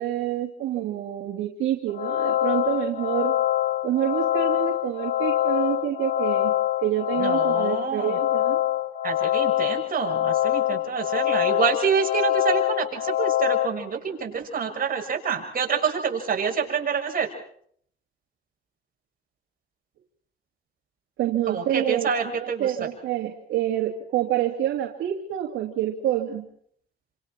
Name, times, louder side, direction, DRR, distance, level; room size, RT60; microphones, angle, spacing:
voice 1, 0.0-3.4 3.8-6.5 6.8-8.6 21.2-26.5, right 12 dB, 85° right, 0 dB, 2.7 m, -27 dB
sound 1, 1.9-13.7, left 14 dB, 65° left, 1.4 m, -24 dB
voice 2, 7.2-8.2 9.0-17.3 21.5-22.7, right 6 dB, 45° right, 1 dB, 6.9 m, -27 dB
29.0 x 27.0 x 4.5 m, 0.64 s
cardioid pair, 90°, 20 cm